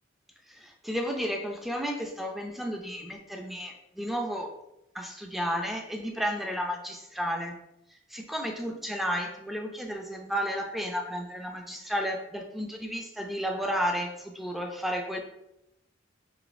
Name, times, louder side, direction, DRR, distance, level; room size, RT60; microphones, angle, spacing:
voice 1, 0.5-4.5 4.9-7.6 8.1-15.2, equal, ahead, 2 dB, 0.4 m, -32 dB
4.9 x 2.7 x 2.5 m, 0.86 s
head